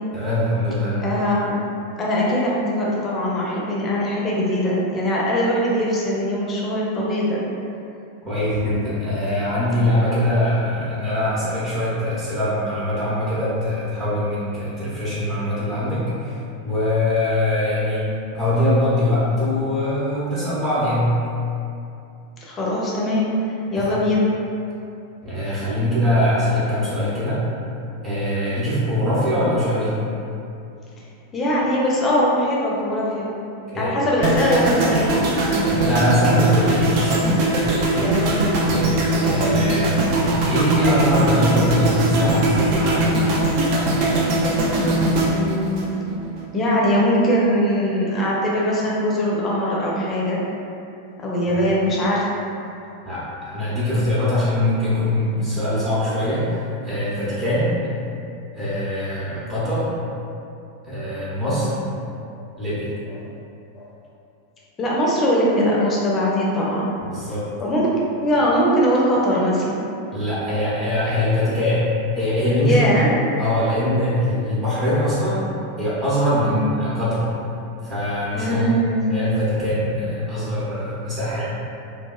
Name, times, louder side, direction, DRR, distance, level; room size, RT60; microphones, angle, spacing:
voice 1, 0.1-1.0 8.2-18.1 18.3-21.1 23.7-24.0 25.2-27.4 28.0-29.9 33.7-33.9 35.7-37.2 37.8-38.1 38.6-38.9 39.2-43.1 51.5-51.7 53.0-56.5 56.8-57.7 58.5-59.9 60.8-61.7 62.6-62.9 67.1-67.4 70.1-71.8 72.1-73.1 73.4-75.5 75.8-77.2 77.8-78.7 79.1-81.4, left 1 dB, 25° right, -11 dB, 0.9 m, -22 dB
voice 2, 1.0-1.6 2.0-7.4 22.4-23.3 23.7-24.3 31.3-33.3 33.7-35.4 38.0-38.5 45.3-46.1 46.5-50.4 51.2-52.2 61.5-61.6 63.8-63.9 64.8-66.9 67.6-67.9 68.2-69.9 72.6-73.2 76.4-76.6 78.3-79.1, equal, 25° left, -5 dB, 0.5 m, -21 dB
sound 1, 34.2-46.4 46.7-47.0, right 1 dB, 45° right, 0.4 m, -20 dB
2.8 x 2.2 x 2.3 m, 2.6 s
figure-of-eight pair, 90°, 0 cm